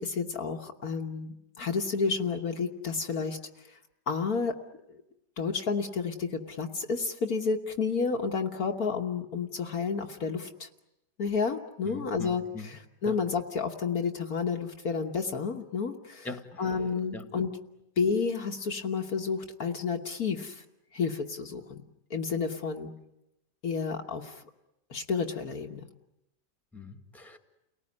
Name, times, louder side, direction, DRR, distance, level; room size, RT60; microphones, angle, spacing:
voice 1, 0.0-3.4 3.7-3.8 4.1-4.6 4.9-5.0 5.4-10.7 11.2-16.3 16.6-17.5 18.0-20.6 20.9-21.8 22.1-22.9 23.6-24.4 24.9-25.8, left 5 dB, 55° left, 3 dB, 1.7 m, -31 dB
voice 2, 11.8-12.7 13.0-13.2 16.2-16.7 17.1-17.2 26.7-27.4, left 2 dB, ahead, 7 dB, 1.7 m, -41 dB
30.0 x 18.5 x 9.8 m, 0.90 s
omnidirectional pair, 1.9 m